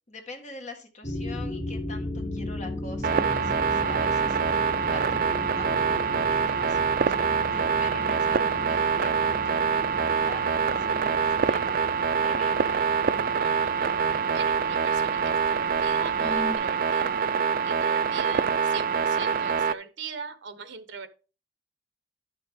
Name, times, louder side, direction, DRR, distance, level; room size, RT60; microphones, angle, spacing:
voice 1, 0.1-5.3 5.6-11.7 12.2-12.9, left 3 dB, 40° left, 3 dB, 1.8 m, -45 dB
sound 1, 1.0-16.6, left 1 dB, 25° left, 1.5 m, -37 dB
sound 2, 3.0-19.7, right 6 dB, 50° right, 0.4 m, -25 dB
voice 2, 13.4-15.2 15.5-17.2 17.6-21.1, right 5 dB, 70° right, 11 dB, 1.0 m, -40 dB
11.0 x 6.7 x 3.6 m, 0.35 s
head